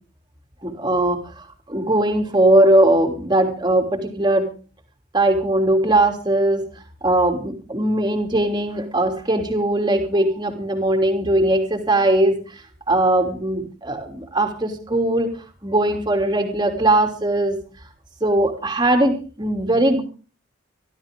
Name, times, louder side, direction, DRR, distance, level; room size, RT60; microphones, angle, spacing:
voice 1, 0.6-1.2 1.7-4.5 5.1-6.6 7.0-12.4 12.9-15.3 15.6-17.6 18.2-20.0, right 1 dB, 20° right, 4 dB, 3.1 m, -19 dB
24.0 x 13.0 x 3.8 m, 0.37 s
head